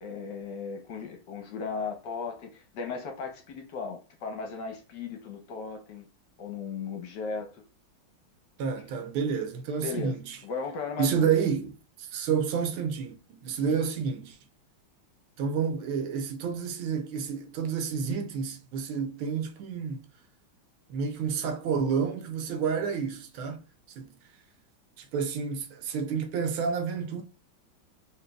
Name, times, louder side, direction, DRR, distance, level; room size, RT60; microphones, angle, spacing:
voice 1, 0.0-6.1 6.4-7.6 9.8-10.1 10.4-11.4, left 5 dB, 65° left, 1.3 m, -36 dB
voice 2, 8.6-10.4 11.0-11.7 12.0-14.4 15.4-20.1 20.9-23.6 24.0-24.2 25.0-27.2, right 6 dB, 80° right, 1.6 m, -29 dB
4.3 x 3.4 x 2.2 m
omnidirectional pair, 2.3 m